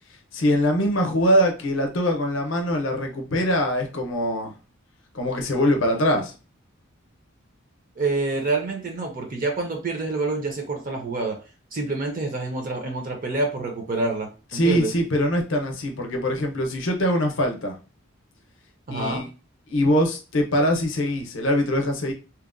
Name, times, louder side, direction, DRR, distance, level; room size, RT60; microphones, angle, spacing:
voice 1, 0.3-4.5 5.1-6.3 14.5-17.7 18.9-19.3 19.7-22.1, equal, 60° left, 3 dB, 0.6 m, -23 dB
voice 2, 8.0-11.4 11.7-14.9 18.9-19.2, right 3 dB, 40° right, 3 dB, 0.5 m, -27 dB
2.8 x 2.1 x 2.4 m, 0.32 s
head